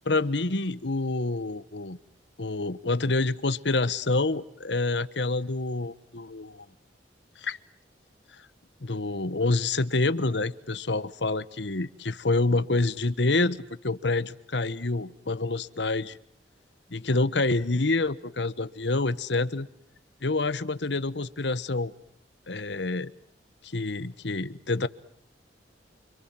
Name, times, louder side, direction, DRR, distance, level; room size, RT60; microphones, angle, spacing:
voice 1, 0.1-2.0 2.4-6.7 7.4-7.6 8.8-16.2 16.9-19.7 20.2-21.9 22.5-23.1 23.7-24.9, left 2 dB, 75° left, 1.3 m, -27 dB
29.5 x 26.5 x 7.7 m
head